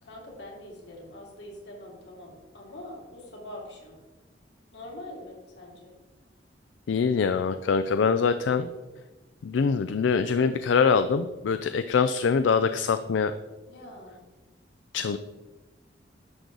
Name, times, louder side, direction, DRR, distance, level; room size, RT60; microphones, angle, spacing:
voice 1, 0.0-4.0 4.7-5.9 13.7-14.2, left 1 dB, 65° left, -2 dB, 2.8 m, -44 dB
voice 2, 6.9-8.7 9.4-13.3 14.9-15.2, left 5 dB, 85° left, 11 dB, 0.4 m, -24 dB
11.0 x 6.8 x 3.9 m, 1.2 s
head